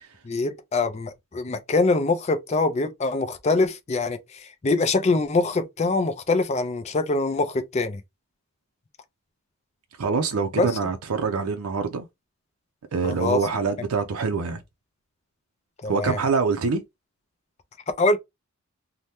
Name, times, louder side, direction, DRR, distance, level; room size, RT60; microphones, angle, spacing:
voice 1, 0.2-8.0 10.5-10.7 13.0-13.4 15.8-16.2 18.0-18.2, left 3 dB, 30° left, 0.4 m, -24 dB
voice 2, 10.0-12.1 12.9-14.6 15.9-16.8, right 4 dB, 85° right, 0.5 m, -25 dB
2.8 x 2.1 x 3.3 m
head